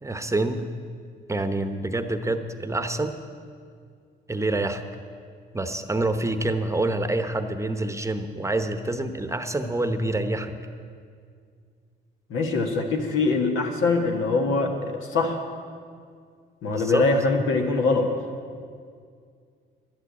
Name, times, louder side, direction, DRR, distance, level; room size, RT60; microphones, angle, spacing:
voice 1, 0.0-0.7 1.3-3.1 4.3-4.8 5.5-10.6 16.7-17.0, right 2 dB, 15° right, 8 dB, 0.9 m, -27 dB
voice 2, 12.3-15.4 16.6-18.1, left 3 dB, 85° left, 3 dB, 1.7 m, -23 dB
11.0 x 11.0 x 8.3 m, 2.2 s
cardioid pair, 90°, 20 cm